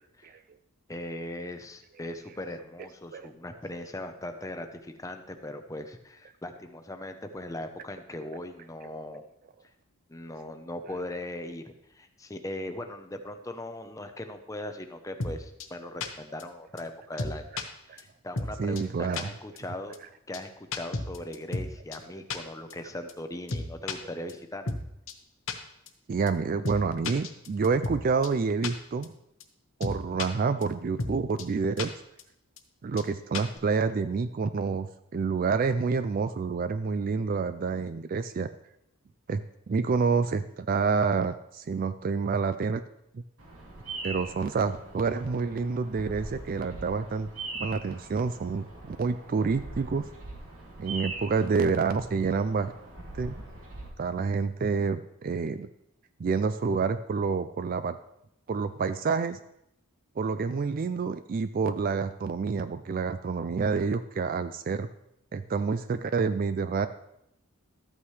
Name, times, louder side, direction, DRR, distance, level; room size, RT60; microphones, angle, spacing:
voice 1, 0.9-9.2 10.1-17.4 17.8-20.0 20.3-24.8, left 1 dB, 15° left, 7 dB, 0.7 m, -39 dB
sound 1, 15.2-15.3 15.6-15.7 16.0-16.1 16.4-16.5 16.8-16.9 17.2-17.6 18.0-18.1 18.4-18.5 18.8-18.9 19.1-19.2 19.6-19.7 19.9-20.0 20.3-20.4 20.7-21.7 21.9-22.0 22.3-22.4 22.7-22.8 23.1-23.2 23.5-24.0 24.3-24.4 24.7-24.8 25.1-25.2 25.5-25.6 25.9-26.0 26.3-26.4 26.6-26.8 27.0-28.0 28.2-28.3 28.6-28.7 29.0-29.1 29.4-29.5 29.8-30.3 30.6-30.7 31.0-31.1 31.4-31.5 31.8-31.9 32.2-32.3 32.6-32.7 33.0-33.1 33.3-33.6, left 3 dB, 60° left, 1.0 m, -32 dB
voice 2, 18.6-19.3 26.1-29.1 29.8-31.9 32.8-38.5 39.3-42.8 43.1-43.2 44.0-47.3 47.6-50.1 50.8-52.7 53.1-53.4 54.0-55.7 56.2-58.0 58.5-59.4 60.2-64.9 65.3-66.9, right 5 dB, 40° right, 12 dB, 0.3 m, -28 dB
Bird vocalization bird call bird song, 43.4-53.9, right 2 dB, 70° right, 2.7 m, -42 dB
13.0 x 8.6 x 3.2 m, 0.81 s
head